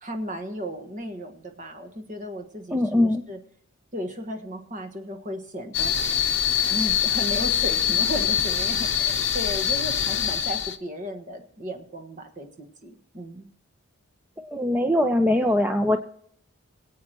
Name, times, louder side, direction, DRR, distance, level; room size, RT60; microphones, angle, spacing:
voice 1, 0.0-3.4 3.9-5.9 6.6-13.5, equal, 35° right, 4 dB, 1.4 m, -35 dB
voice 2, 2.7-3.2 14.4-16.0, left 1 dB, 10° right, 6 dB, 0.5 m, -22 dB
sound 1, 5.7-10.8, left 9 dB, 55° left, 0.9 m, -24 dB
22.5 x 8.5 x 3.0 m, 0.65 s
head